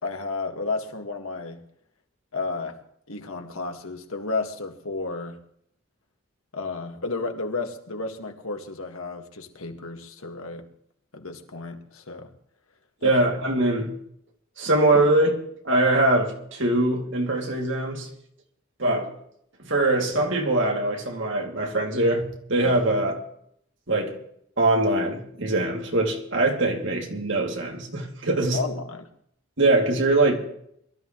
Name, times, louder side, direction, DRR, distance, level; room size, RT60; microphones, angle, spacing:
voice 1, 0.0-1.7 2.3-2.8 3.1-5.4 6.5-10.7 11.1-12.3 13.0-13.2 28.5-29.1, left 3 dB, 90° left, 1.9 m, -32 dB
voice 2, 13.0-13.9 14.6-18.1 18.8-19.1 19.6-23.2 23.9-24.2 24.6-28.6 29.6-30.4, right 2 dB, 60° right, 2.6 m, -22 dB
23.0 x 13.0 x 3.2 m
head